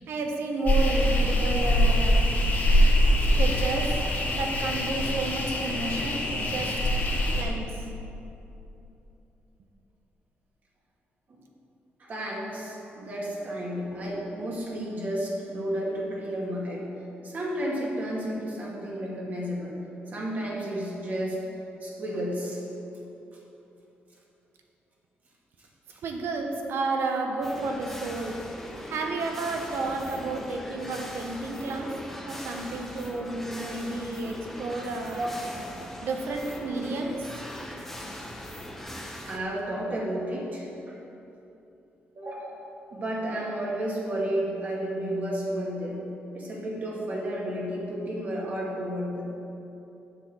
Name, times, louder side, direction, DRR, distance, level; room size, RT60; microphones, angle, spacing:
voice 1, 0.0-2.3 3.3-4.0 4.3-6.7 7.4-7.8 26.0-28.4 28.9-31.9 32.2-35.3 36.0-37.5, right 3 dB, 70° right, 2 dB, 1.2 m, -31 dB
sound 1, 0.7-7.4, equal, 45° left, 1.6 m, -23 dB
voice 2, 12.0-16.9 17.2-19.7 20.1-21.4 21.8-22.6 25.9-26.0 33.6-33.7 35.2-35.3 39.3-40.9 42.2-46.0 46.3-49.2, right 1 dB, 45° right, -4 dB, 2.3 m, -32 dB
sound 2, 27.4-39.4, equal, 5° left, 0.9 m, -40 dB
7.4 x 7.3 x 6.2 m, 2.9 s
cardioid pair, 120°, 4 cm